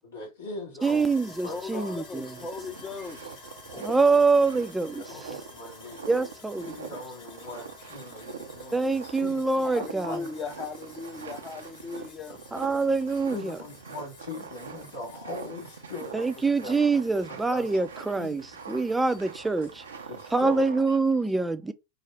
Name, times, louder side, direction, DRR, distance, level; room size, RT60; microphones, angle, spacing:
voice 1, 0.0-1.1 1.4-2.0 3.7-4.2 5.0-6.3 6.6-9.4 10.1-10.2 13.3-16.8 17.3-17.7 18.2-18.3 18.8-19.0 20.1-20.6 20.9-21.0, left 2 dB, 75° left, 2.0 m, -41 dB
Sawing, 0.8-20.7, left 3 dB, 60° left, 2.2 m, -51 dB
voice 2, 0.8-2.3 3.8-5.0 6.0-6.7 8.7-10.2 12.5-13.6 16.1-19.8 20.3-21.7, right 3 dB, 10° right, 0.5 m, -25 dB
voice 3, 1.5-3.5 9.7-12.4, left 4 dB, 25° left, 0.8 m, -38 dB
sound 1, 1.5-1.6 2.0-21.0, right 6 dB, 85° right, 0.7 m, -43 dB
4.9 x 2.1 x 3.2 m
hypercardioid pair, 90°, 0 cm